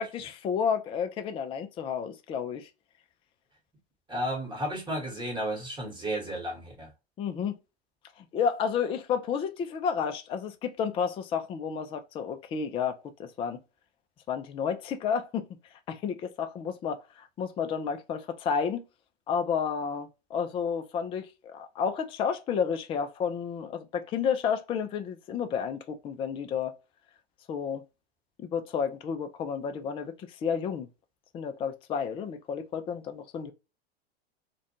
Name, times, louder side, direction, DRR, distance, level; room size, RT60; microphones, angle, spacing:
voice 1, 0.0-2.7 7.2-7.6 8.2-13.6 14.3-15.5 15.9-18.8 19.3-26.8 27.5-27.8 28.4-30.1 30.4-30.9 31.3-33.5, left 7 dB, 20° left, 0.3 m, -31 dB
voice 2, 4.1-6.9, equal, 15° right, 1.1 m, -33 dB
2.5 x 2.2 x 2.7 m
hypercardioid pair, 95°, 32 cm